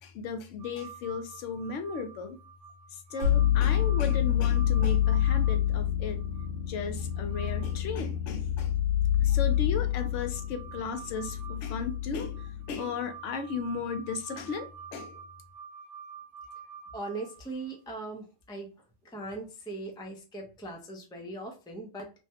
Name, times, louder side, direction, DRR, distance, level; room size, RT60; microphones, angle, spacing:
voice 1, 0.0-2.4 2.9-6.2 6.7-8.8 9.2-15.2, left 5 dB, 70° left, 7 dB, 0.9 m, -35 dB
sound 1, 0.6-6.5 7.0-7.8 8.1-8.2 9.3-17.7 19.9-20.0, right 7 dB, 60° right, 0.7 m, -48 dB
sound 2, 3.2-12.8, left 11 dB, 85° right, 1.2 m, -27 dB
voice 2, 16.9-18.7 19.0-22.1, right 2 dB, 5° left, 2 dB, 0.3 m, -39 dB
3.3 x 2.2 x 2.6 m, 0.32 s
omnidirectional pair, 1.3 m